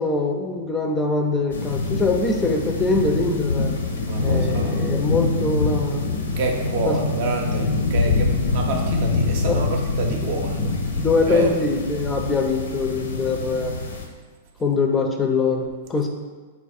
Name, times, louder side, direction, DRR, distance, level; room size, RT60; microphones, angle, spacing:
voice 1, 0.0-3.8 4.2-6.1 6.8-7.0 9.5-9.6 10.1-10.3 11.0-13.7 14.6-16.1, left 3 dB, 20° left, 4 dB, 0.4 m, -23 dB
sound 1, 1.5-14.1, left 3 dB, 80° left, 0.5 m, -25 dB
voice 2, 4.0-4.8 6.4-7.6 7.9-10.6 11.0-11.5, right 3 dB, 60° right, 2 dB, 0.6 m, -28 dB
4.1 x 2.3 x 4.1 m, 1.4 s
hypercardioid pair, 110°, 0 cm